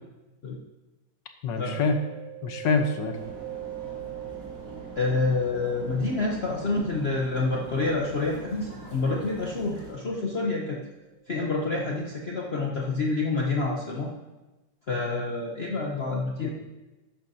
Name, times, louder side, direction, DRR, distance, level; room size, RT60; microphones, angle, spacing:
voice 1, 1.4-2.0 2.4-3.2 16.4-16.5, left 4 dB, 80° left, 6 dB, 1.7 m, -25 dB
Mallet percussion, 1.6-11.2, right 16 dB, 75° right, 1.5 m, -44 dB
sound 1, 3.1-9.9, right 2 dB, 60° right, 2.6 m, -43 dB
voice 2, 4.9-10.8 11.3-14.1 14.9-16.5, left 3 dB, 45° left, -2 dB, 0.9 m, -28 dB
12.5 x 10.0 x 2.8 m, 1.1 s
omnidirectional pair, 2.0 m